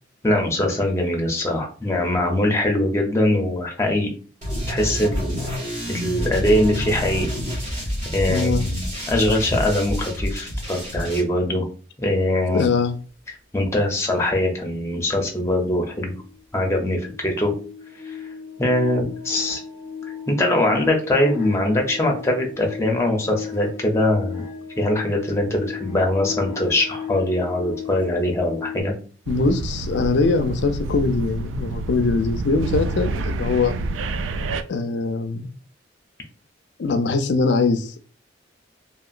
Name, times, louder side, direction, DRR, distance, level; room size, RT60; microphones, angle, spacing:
voice 1, 0.2-4.1 4.7-7.3 8.1-8.8 9.1-11.7 12.0-12.7 13.5-16.1 16.5-17.5 18.0-18.2 18.6-19.6 20.3-24.4 24.8-28.9, left 1 dB, 15° left, 0.6 m, -22 dB
sound 1, 4.4-11.2, equal, 40° right, 1.4 m, -28 dB
voice 2, 8.3-8.7 12.5-13.0 29.3-33.7 34.7-35.5 36.8-38.1, left 3 dB, 70° left, 0.4 m, -22 dB
sound 2, 15.2-15.3 15.6-28.8, left 6 dB, 10° right, 1.0 m, -36 dB
sound 3, 29.3-34.6, right 2 dB, 90° right, 0.3 m, -28 dB
2.8 x 2.8 x 2.4 m
head